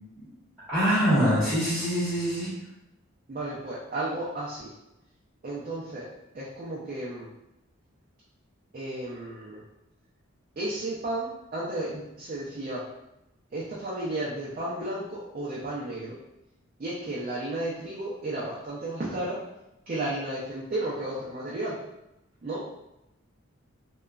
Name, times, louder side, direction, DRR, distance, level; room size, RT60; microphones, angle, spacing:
voice 1, 0.7-2.5, equal, ahead, -13 dB, 1.0 m, -24 dB
voice 2, 3.3-4.7 5.4-6.1 6.3-7.3 8.7-9.6 10.6-12.8 13.5-16.2 16.8-19.4 19.9-21.7 22.4-22.6, right 1 dB, 40° right, -7 dB, 0.4 m, -33 dB
2.9 x 2.3 x 2.3 m, 0.90 s
head